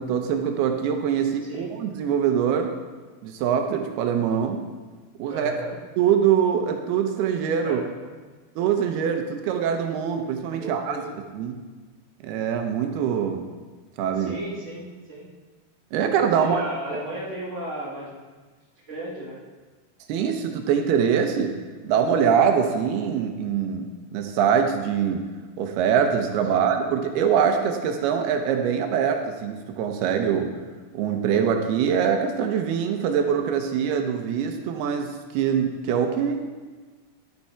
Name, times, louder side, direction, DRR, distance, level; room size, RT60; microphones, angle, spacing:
voice 1, 0.0-2.8 3.2-4.6 5.2-5.5 6.0-7.8 8.6-11.0 11.3-11.6 12.2-13.4 14.0-14.4 15.9-16.6 20.1-21.6 21.8-25.2 25.6-30.5 30.9-36.4, right 7 dB, 85° right, 5 dB, 2.9 m, -23 dB
voice 2, 5.2-5.8 7.6-8.1 10.5-11.1 14.1-15.2 16.3-18.1 18.9-19.4 26.5-26.7, right 1 dB, 30° right, -6 dB, 1.5 m, -35 dB
11.5 x 7.2 x 4.7 m, 1.4 s
omnidirectional pair, 4.5 m